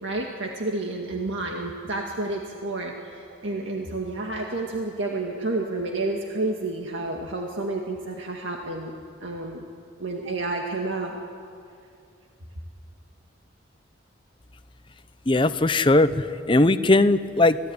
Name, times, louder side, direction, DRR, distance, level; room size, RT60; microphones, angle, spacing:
voice 1, 0.0-8.9 9.2-9.6 10.0-11.2, right 2 dB, 75° right, 1 dB, 2.0 m, -30 dB
voice 2, 15.3-17.6, left 2 dB, 25° left, 12 dB, 0.7 m, -19 dB
26.0 x 17.0 x 9.7 m, 2.4 s
head